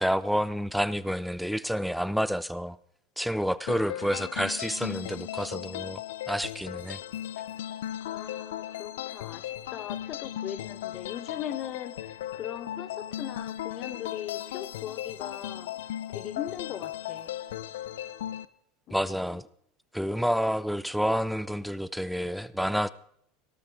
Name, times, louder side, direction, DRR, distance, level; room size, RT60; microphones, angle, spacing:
voice 1, 0.0-2.8 3.2-7.0 18.9-19.5 19.9-22.9, equal, ahead, 17 dB, 0.6 m, -29 dB
sound 1, 3.7-18.4, left 12 dB, 85° left, 0.7 m, -37 dB
voice 2, 3.7-4.3 8.0-15.7 16.1-17.4 18.9-19.4, left 11 dB, 50° left, 12 dB, 1.4 m, -40 dB
18.0 x 12.5 x 3.7 m, 0.70 s
supercardioid pair, 100°, 0 cm